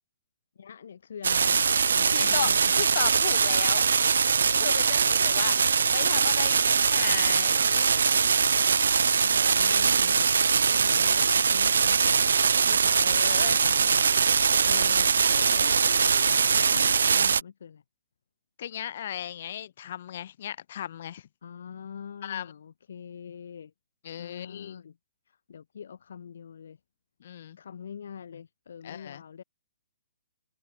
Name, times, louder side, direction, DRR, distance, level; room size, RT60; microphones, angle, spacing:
voice 1, 0.5-1.6 1.9-2.9 8.6-10.5 10.7-13.2 13.6-14.1 14.6-17.8 21.4-23.7 24.2-25.0 25.3-26.8 27.6-29.4, left 7 dB, 70° left, 1.0 m, -44 dB
sound 1, 1.2-17.4, right 6 dB, 80° right, 0.4 m, -22 dB
sound 2, 1.8-9.4, right 9 dB, 60° right, 2.3 m, -49 dB
voice 2, 2.1-2.5 2.8-3.8 4.5-8.1 13.0-13.6 18.6-21.2 22.2-22.5 24.0-24.8 27.2-27.6 28.8-29.2, left 10 dB, 55° left, 1.3 m, -36 dB
hypercardioid pair, 150°, 0 cm